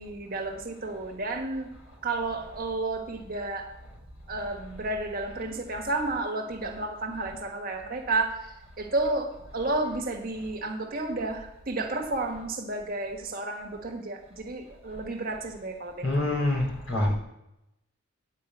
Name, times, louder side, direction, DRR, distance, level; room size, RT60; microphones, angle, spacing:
voice 1, 0.0-1.7 2.0-3.7 4.3-8.4 8.8-16.3, right 2 dB, 45° right, 2 dB, 1.4 m, -31 dB
voice 2, 16.0-17.1, left 1 dB, 75° left, -2 dB, 3.6 m, -26 dB
9.8 x 5.2 x 8.1 m, 0.88 s
head